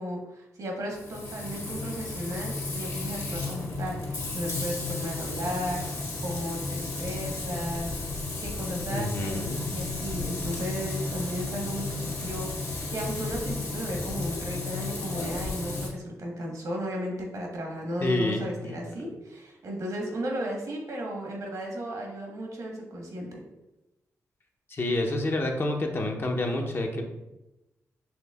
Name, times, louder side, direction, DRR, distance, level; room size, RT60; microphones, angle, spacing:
voice 1, 0.0-7.9 8.4-23.4, equal, 70° right, 0 dB, 1.2 m, -35 dB
Frying (food), 0.9-15.9, left 3 dB, 60° left, 1.5 m, -33 dB
voice 2, 8.9-9.6 18.0-19.0 24.7-27.0, left 2 dB, 40° left, 2 dB, 0.7 m, -28 dB
5.9 x 3.2 x 2.3 m, 0.98 s
cardioid pair, 65°, 6 cm